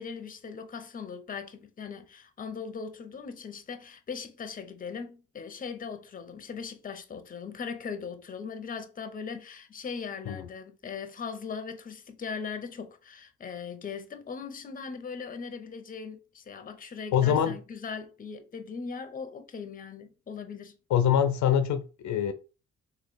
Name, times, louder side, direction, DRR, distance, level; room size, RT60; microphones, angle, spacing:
voice 1, 0.0-20.8, left 5 dB, 30° left, 0.6 m, -39 dB
voice 2, 17.1-17.6 20.9-22.3, left 9 dB, 70° left, 0.5 m, -24 dB
3.1 x 2.7 x 4.0 m
cardioid pair, 90°, 30 cm